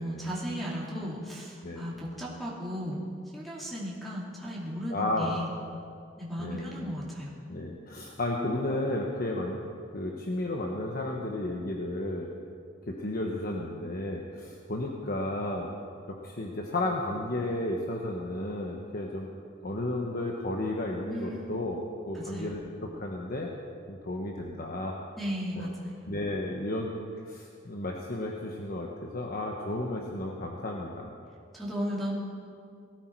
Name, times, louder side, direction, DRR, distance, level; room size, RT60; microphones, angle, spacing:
voice 1, 0.0-3.1 3.3-5.5 6.2-7.3 21.1-21.6 22.1-22.6 25.2-26.0 31.5-32.1, equal, ahead, -5 dB, 2.7 m, -35 dB
voice 2, 4.9-5.3 6.4-6.9 7.5-9.6 9.9-12.3 12.9-15.7 16.1-19.3 19.6-21.8 22.1-23.5 23.9-24.9 25.5-25.7 26.1-26.9 27.2-31.1, left 1 dB, 50° left, 0 dB, 1.2 m, -33 dB
18.5 x 14.0 x 4.7 m, 2.3 s
head